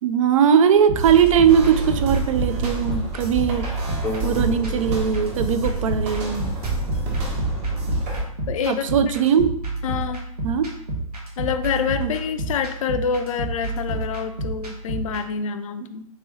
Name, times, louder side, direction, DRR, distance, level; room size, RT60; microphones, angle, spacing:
voice 1, 0.0-3.7 4.2-6.5 8.7-9.5 10.4-10.7 12.0-12.1, right 8 dB, 60° right, 10 dB, 0.4 m, -19 dB
sound 1, 0.8-15.2, right 2 dB, 85° right, 1.0 m, -30 dB
sound 2, 1.0-8.2, right 2 dB, 40° right, 1.0 m, -28 dB
sound 3, 4.0-7.7, left 2 dB, 15° left, 0.6 m, -37 dB
voice 2, 8.5-9.1 9.8-10.3 11.4-16.1, left 7 dB, 60° left, 9 dB, 0.4 m, -27 dB
3.5 x 2.8 x 3.1 m, 0.74 s
figure-of-eight pair, 100°, 19 cm